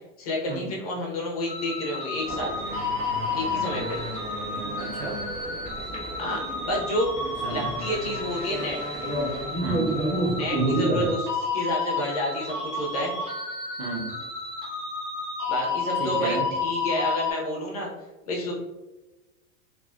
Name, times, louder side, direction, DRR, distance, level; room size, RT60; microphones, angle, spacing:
voice 1, 0.2-2.5 3.3-4.0 6.2-7.1 7.5-8.8 10.3-13.1 15.5-17.9 18.3-18.5, left 1 dB, 30° left, -3 dB, 0.4 m, -30 dB
sound 1, 1.5-17.3, left 4 dB, 30° right, 1.2 m, -32 dB
sound 2, 2.2-11.2, right 1 dB, 75° right, 1.3 m, -31 dB
voice 2, 4.8-5.2 7.4-7.7 9.6-9.9 13.8-14.1 16.0-16.4, right 3 dB, 45° right, 0 dB, 0.7 m, -33 dB
3.1 x 2.4 x 2.3 m, 1.1 s
supercardioid pair, 175°, 43 cm